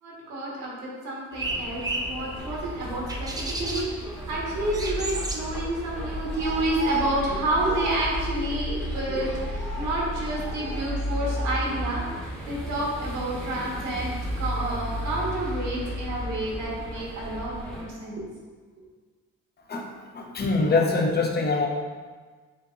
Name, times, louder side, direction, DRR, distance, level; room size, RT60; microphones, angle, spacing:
voice 1, 0.0-18.2, right 1 dB, 85° right, -4 dB, 1.4 m, -29 dB
sound 1, 1.3-7.1, right 2 dB, 15° right, 0.5 m, -35 dB
sound 2, 1.4-17.8, equal, 5° left, 0.9 m, -33 dB
voice 2, 20.1-21.7, left 3 dB, 35° left, 2 dB, 0.7 m, -23 dB
5.1 x 3.6 x 2.5 m, 1.4 s
cardioid pair, 90°, 30 cm